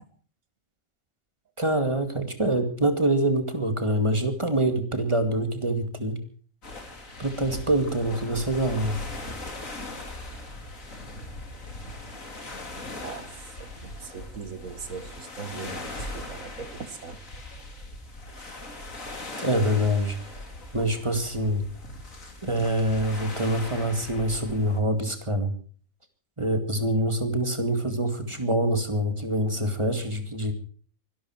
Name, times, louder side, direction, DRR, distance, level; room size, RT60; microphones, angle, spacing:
voice 1, 1.6-6.2 7.2-9.0 19.4-20.4 20.7-21.6 22.4-25.5 26.4-30.5, right 1 dB, 20° right, 7 dB, 2.2 m, -25 dB
sound 1, 6.6-24.8, left 2 dB, 75° left, 3.4 m, -40 dB
voice 2, 12.9-17.2 17.6-17.7, right 5 dB, 80° right, 12 dB, 1.9 m, -40 dB
24.0 x 12.0 x 4.6 m, 0.43 s
omnidirectional pair, 1.4 m